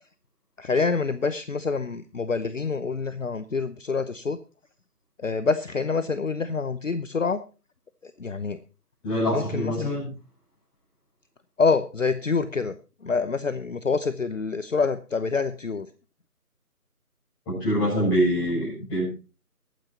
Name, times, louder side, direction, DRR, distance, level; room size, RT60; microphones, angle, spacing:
voice 1, 0.6-4.4 5.2-7.4 8.0-8.6 9.3-10.0 11.6-12.8 13.0-15.9, left 4 dB, 55° left, 13 dB, 0.8 m, -26 dB
voice 2, 9.0-10.1 17.5-19.1, equal, 10° left, -8 dB, 7.5 m, -25 dB
23.0 x 9.2 x 2.8 m, 0.32 s
figure-of-eight pair, 160°, 46 cm